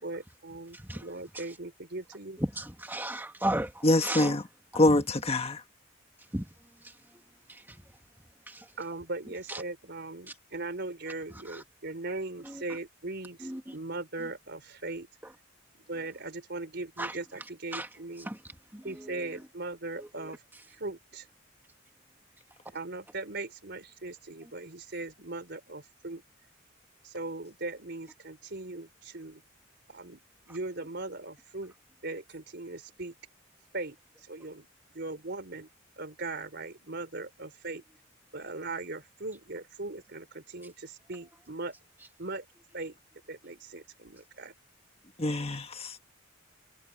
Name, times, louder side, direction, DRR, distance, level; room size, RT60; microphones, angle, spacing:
voice 1, 0.0-2.4 8.8-15.1 15.7-18.3 18.8-20.4 20.7-21.3 22.7-26.2 27.0-29.4 29.9-30.2 30.5-31.7 32.0-33.1 33.7-34.7 34.9-35.7 36.0-37.8 38.3-41.7 42.2-42.5 42.7-43.0 43.3-44.5, right 2 dB, 55° right, 3.9 m, -39 dB
voice 2, 2.6-4.3 6.3-6.4 8.5-8.6 9.5-9.6 11.5-11.6 13.4-13.6 17.0-17.1 17.7-17.9 18.3-18.4 18.7-18.8 20.0-20.3, right 1 dB, 10° right, 2.1 m, -34 dB
voice 3, 3.8-4.4 4.7-5.6 45.2-46.1, left 1 dB, 30° left, 1.4 m, -25 dB
head